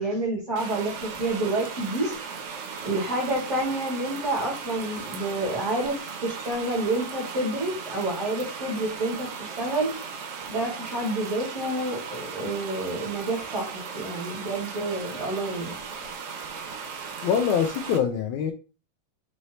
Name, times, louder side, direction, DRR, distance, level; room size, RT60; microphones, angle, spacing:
voice 1, 0.0-2.3 2.8-9.9 10.5-15.7, right 2 dB, 25° right, 1.7 m, -29 dB
sound 1, 0.6-18.0, right 5 dB, 90° right, 2.7 m, -37 dB
voice 2, 17.2-18.5, left 7 dB, 90° left, 1.6 m, -24 dB
5.9 x 3.2 x 2.7 m
omnidirectional pair, 3.9 m